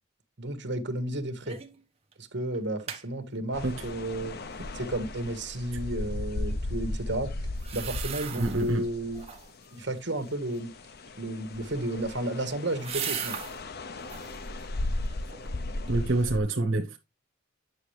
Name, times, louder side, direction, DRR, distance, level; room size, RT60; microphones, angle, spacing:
voice 1, 0.4-1.6 2.2-4.4 4.7-7.3 7.7-9.2 9.7-10.7 11.2-13.4, right 1 dB, 60° right, 1.4 m, -32 dB
sound 1, 1.5-1.8 2.1-2.2 2.5-3.0 7.5-8.8 9.1-9.7 11.6-13.6 14.0-14.4 14.9-15.5 15.9-16.0, right 8 dB, 30° right, 1.2 m, -38 dB
sound 2, 3.5-9.7 10.2-16.4, left 2 dB, 50° left, 0.6 m, -36 dB
voice 2, 8.4-8.8 15.9-17.0, right 2 dB, 80° right, 1.0 m, -26 dB
9.6 x 6.4 x 3.3 m
head